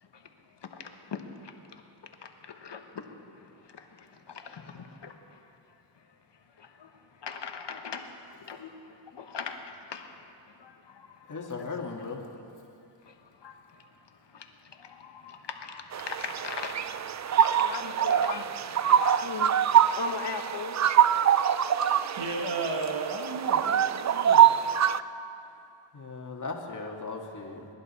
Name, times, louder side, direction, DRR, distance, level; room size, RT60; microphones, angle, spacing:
voice 1, 0.0-11.4 13.0-21.9, left 5 dB, 60° left, 5 dB, 1.3 m, -42 dB
voice 2, 11.3-12.3 25.9-27.7, left 4 dB, 40° left, 0 dB, 1.9 m, -37 dB
sound 1, 15.9-25.0, right 9 dB, 40° right, 0.4 m, -24 dB
voice 3, 21.8-24.7, right 3 dB, 60° right, 1 dB, 1.7 m, -34 dB
22.0 x 11.0 x 4.2 m, 2.7 s
cardioid pair, 65°, 48 cm